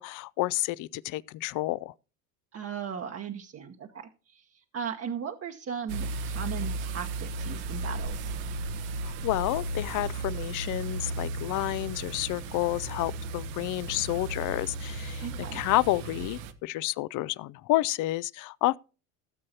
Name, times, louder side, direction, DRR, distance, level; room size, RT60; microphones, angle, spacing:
voice 1, 0.0-1.9 9.0-18.8, left 18 dB, 45° left, 0.5 m, -30 dB
voice 2, 2.5-8.3 15.2-15.6, right 7 dB, 30° right, 1.0 m, -37 dB
sound 1, 5.9-16.5, right 2 dB, 65° right, 1.2 m, -35 dB
17.0 x 7.5 x 2.8 m
hypercardioid pair, 75°, 46 cm